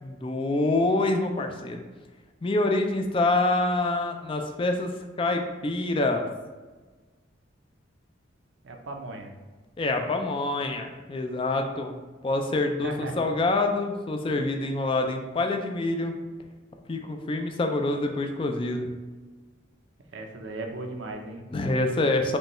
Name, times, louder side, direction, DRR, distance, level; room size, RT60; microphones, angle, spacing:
voice 1, 0.0-1.9 2.4-4.9 5.2-6.3 9.8-11.9 12.2-16.1 16.9-18.9 21.5-22.4, left 2 dB, 25° left, 4 dB, 0.3 m, -26 dB
voice 2, 8.6-9.3 12.8-13.3 20.1-21.5, right 2 dB, 70° right, 3 dB, 0.6 m, -37 dB
5.2 x 2.3 x 3.0 m, 1.3 s
head